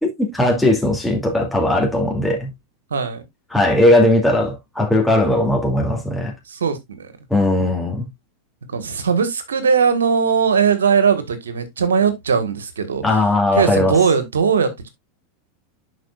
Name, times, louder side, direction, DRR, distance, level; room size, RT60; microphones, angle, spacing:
voice 1, 0.0-2.5 3.5-6.3 7.3-8.1 13.0-14.0, left 1 dB, 5° left, 2.6 m, -18 dB
voice 2, 2.9-3.2 6.5-7.1 8.6-13.0 13.5-14.9, right 6 dB, 85° right, 1.5 m, -19 dB
11.0 x 5.0 x 2.4 m
hypercardioid pair, 95°, 0 cm